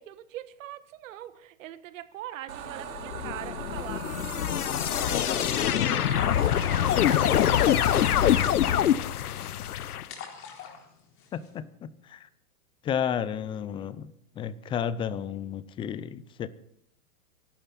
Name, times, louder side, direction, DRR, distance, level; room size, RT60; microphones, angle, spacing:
voice 1, 0.0-4.0 5.1-9.3, right 13 dB, 60° right, 13 dB, 1.5 m, -43 dB
sound 1, 2.5-8.5, right 8 dB, 75° right, 2.6 m, -39 dB
sound 2, 2.9-10.0, left 11 dB, 85° left, 0.9 m, -25 dB
sound 3, 6.3-11.6, left 6 dB, 30° left, 4.1 m, -41 dB
voice 2, 11.3-12.3 12.8-16.5, left 8 dB, 10° left, 16 dB, 0.5 m, -32 dB
24.5 x 11.5 x 4.1 m, 0.73 s
hypercardioid pair, 135°, 44 cm